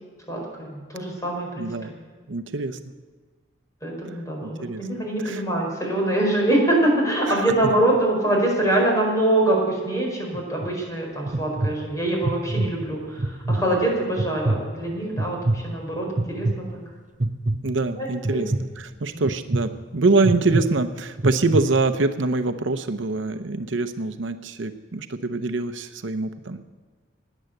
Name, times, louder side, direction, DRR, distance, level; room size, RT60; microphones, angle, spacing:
voice 1, 0.3-1.9 3.8-16.6 18.0-18.5 19.1-19.2, right 1 dB, 15° left, -1 dB, 4.7 m, -24 dB
voice 2, 1.6-1.9 2.3-2.8 4.4-4.8 5.2-5.4 7.3-7.4 17.6-26.6, right 3 dB, 70° right, 9 dB, 0.8 m, -24 dB
sound 1, 10.3-10.7 11.3-11.7 12.2-12.7 13.2-13.6 14.2-14.6 15.2-15.6 16.2-16.5 17.2-17.6 18.2-18.6 19.3-19.6 20.2-20.6 21.2-21.6, right 2 dB, 40° right, 0.7 m, -23 dB
17.5 x 10.0 x 7.9 m, 1.5 s
head